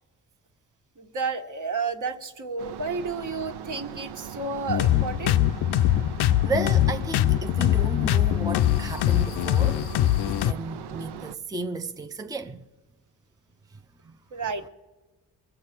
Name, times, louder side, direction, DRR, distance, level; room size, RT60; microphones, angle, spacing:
voice 1, 1.0-5.4 14.3-14.6, right 4 dB, 50° right, 1.5 m, -31 dB
sound 1, 2.6-11.3, right 8 dB, 75° right, 0.7 m, -40 dB
sound 2, 4.7-10.5, left 13 dB, 75° left, 0.5 m, -22 dB
voice 2, 6.4-9.9 10.2-12.6 14.0-14.2, right 3 dB, 10° right, 0.6 m, -33 dB
23.0 x 7.7 x 5.9 m
cardioid pair, 60°, 40 cm